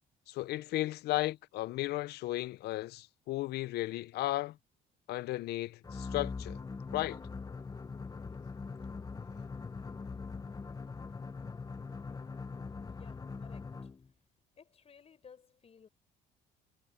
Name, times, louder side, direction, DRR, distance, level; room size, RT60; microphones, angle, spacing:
voice 1, 0.3-4.6 5.1-6.6 6.9-7.2, left 17 dB, 75° left, 0.6 m, -35 dB
sound 1, 5.8-14.1, left 4 dB, 20° left, 1.1 m, -42 dB
voice 2, 12.8-13.9 14.6-15.9, left 6 dB, 35° left, 6.0 m, -58 dB
cardioid pair, 110°, 17 cm